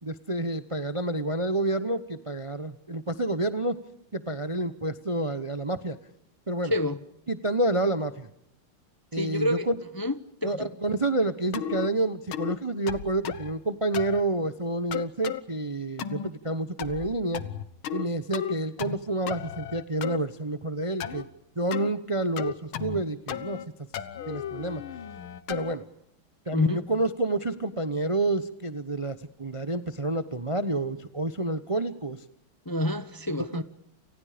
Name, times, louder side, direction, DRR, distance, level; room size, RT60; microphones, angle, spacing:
voice 1, 0.0-3.8 4.1-6.0 6.5-6.7 7.3-8.3 9.1-9.8 10.4-17.4 17.9-21.3 21.6-23.6 24.3-24.8 25.5-25.8 26.5-32.2 33.4-33.6, right 2 dB, 30° right, 11 dB, 0.6 m, -29 dB
voice 2, 6.6-7.0 9.1-9.7 10.0-10.7 26.5-26.8 32.7-33.6, left 1 dB, 25° left, 12 dB, 0.4 m, -28 dB
sound 1, 11.5-11.9 12.3-12.6 12.9-13.5 13.9-14.2 14.9-15.4 16.0-16.3 16.8-17.1 17.3-18.1 18.3-19.0 19.3-20.2 21.0-21.2 21.7-21.9 22.4-23.0 23.3-23.7 23.9-25.7, left 9 dB, 80° left, 2.0 m, -34 dB
30.0 x 29.5 x 5.1 m, 0.76 s
omnidirectional pair, 2.3 m